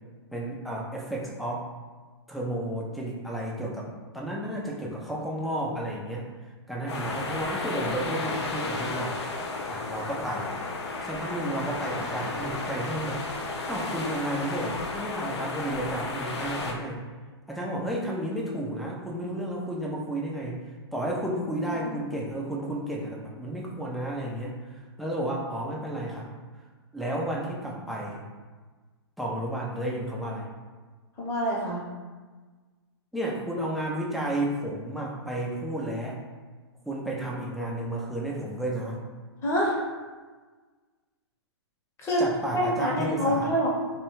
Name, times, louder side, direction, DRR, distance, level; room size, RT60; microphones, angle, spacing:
voice 1, 0.3-1.6 2.3-3.9 4.1-6.2 6.7-9.2 9.7-10.5 11.0-13.2 13.7-17.0 17.5-20.6 20.9-26.3 26.9-28.2 29.2-30.5 33.1-36.2 36.9-39.0 42.2-43.5, right 1 dB, ahead, -3 dB, 0.3 m, -32 dB
sound 1, 6.9-16.7, left 3 dB, 70° left, 0.5 m, -33 dB
voice 2, 31.2-31.8 39.4-39.8 42.0-42.2 42.5-43.7, equal, 20° left, -4 dB, 0.7 m, -26 dB
2.6 x 2.2 x 2.9 m, 1.4 s
hypercardioid pair, 125°, 14 cm